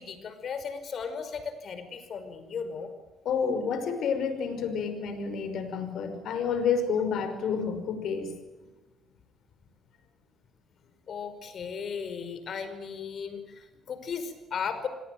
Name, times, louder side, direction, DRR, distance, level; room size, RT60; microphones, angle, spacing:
voice 1, 0.0-2.9 11.1-14.9, left 6 dB, 60° left, 10 dB, 5.4 m, -36 dB
voice 2, 3.2-8.3, left 6 dB, 75° left, 9 dB, 5.4 m, -29 dB
27.5 x 20.5 x 9.3 m, 1.1 s
cardioid pair, 75°, 0 cm